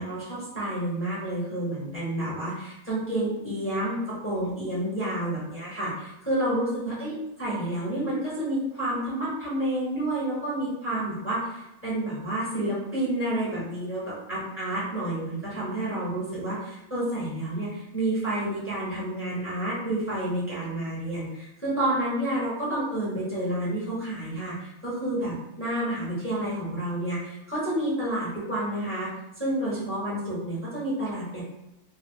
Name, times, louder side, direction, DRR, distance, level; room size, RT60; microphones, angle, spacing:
voice 1, 0.0-29.1 29.4-31.4, right 1 dB, 10° left, -8 dB, 0.9 m, -29 dB
2.6 x 2.2 x 3.6 m, 0.94 s
omnidirectional pair, 1.5 m